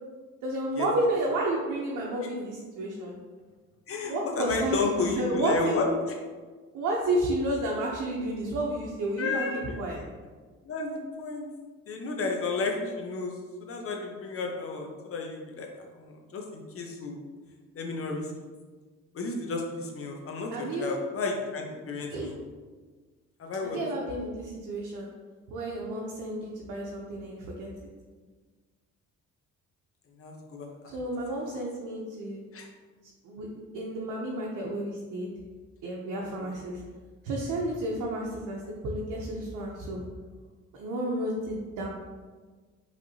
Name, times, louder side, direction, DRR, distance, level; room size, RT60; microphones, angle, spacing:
voice 1, 0.4-3.1 4.0-5.8 6.7-10.0 20.5-20.9 22.1-22.3 23.7-25.1 25.5-27.7 30.9-32.4 33.2-33.5 33.7-35.3 35.8-36.8 37.2-40.0 40.8-41.9, right 1 dB, 85° right, -3 dB, 0.7 m, -31 dB
voice 2, 3.9-5.9 9.2-9.7 10.6-11.5 11.9-15.7 16.0-17.2 17.7-18.3 19.1-22.3 23.4-23.8 30.2-30.7 31.4-31.6 32.5-32.7 36.4-36.6, left 3 dB, 45° left, 2 dB, 0.8 m, -32 dB
5.1 x 3.3 x 2.8 m, 1.4 s
cardioid pair, 90°, 30 cm